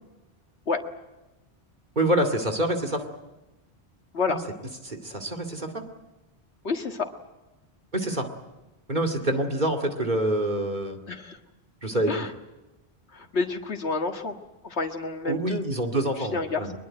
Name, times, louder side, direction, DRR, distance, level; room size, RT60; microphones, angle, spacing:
voice 1, 2.0-3.0 4.3-4.4 4.8-5.8 7.9-8.3 8.9-11.0 11.8-12.1 15.2-16.7, right 1 dB, 45° right, 4 dB, 2.6 m, -26 dB
voice 2, 6.6-7.1 11.1-11.4 12.1-12.3 13.1-14.4 14.6-15.6 16.2-16.7, left 4 dB, 80° left, 5 dB, 2.0 m, -29 dB
22.5 x 22.5 x 9.0 m, 1.0 s
omnidirectional pair, 1.1 m